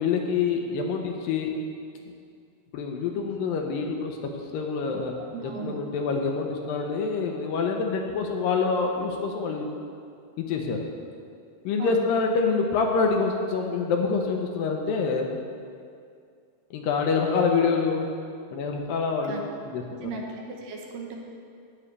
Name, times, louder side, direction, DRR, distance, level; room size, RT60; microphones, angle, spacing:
voice 1, 0.0-1.5 2.7-4.2 4.5-5.1 5.6-9.7 10.4-10.9 11.6-15.3 16.7-18.1 18.5-19.3 19.7-20.1, left 5 dB, 75° left, 2 dB, 2.4 m, -26 dB
voice 2, 5.3-5.8 11.8-12.1 19.3-19.4 20.0-21.2, right 5 dB, 75° right, -1 dB, 2.6 m, -36 dB
12.5 x 9.7 x 3.3 m, 2.3 s
omnidirectional pair, 4.3 m